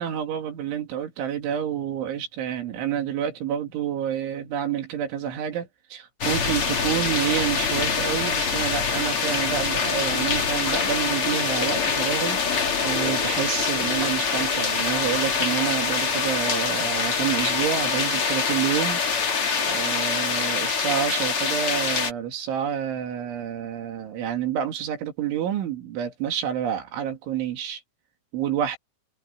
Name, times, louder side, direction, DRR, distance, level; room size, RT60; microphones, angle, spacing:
voice 1, 0.0-27.8 28.3-28.8, right 9 dB, 75° right, 4.9 m, -29 dB
sound 1, 6.2-22.1, left 5 dB, 35° left, 2.4 m, -25 dB
omnidirectional pair, 5.6 m